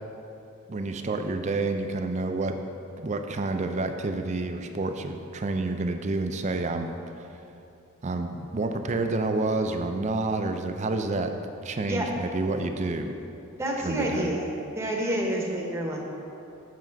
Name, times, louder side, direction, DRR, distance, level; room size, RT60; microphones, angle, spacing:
voice 1, 0.7-2.5 3.0-7.3 8.0-11.3 11.6-13.1 13.8-14.3, right 2 dB, 30° right, 6 dB, 0.4 m, -29 dB
voice 2, 13.6-14.5 14.7-16.0, right 1 dB, 10° right, -2 dB, 0.9 m, -28 dB
7.6 x 6.0 x 4.6 m, 2.8 s
head